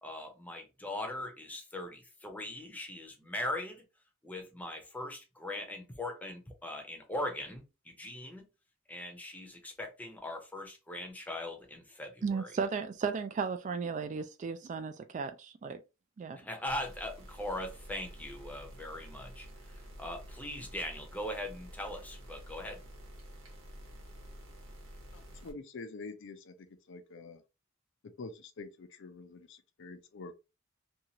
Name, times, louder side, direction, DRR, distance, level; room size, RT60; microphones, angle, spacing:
voice 1, 0.0-3.8 4.2-8.5 8.9-12.5 16.4-19.5 20.0-22.8, left 1 dB, 10° left, 0.7 m, -40 dB
voice 2, 12.2-15.8 16.2-16.4, right 5 dB, 35° right, 0.3 m, -35 dB
sound 1, 16.7-25.5, equal, 75° right, 1.0 m, -50 dB
voice 3, 25.1-26.5 26.9-27.4 28.2-30.3, left 3 dB, 65° left, 0.5 m, -46 dB
2.7 x 2.4 x 2.8 m
head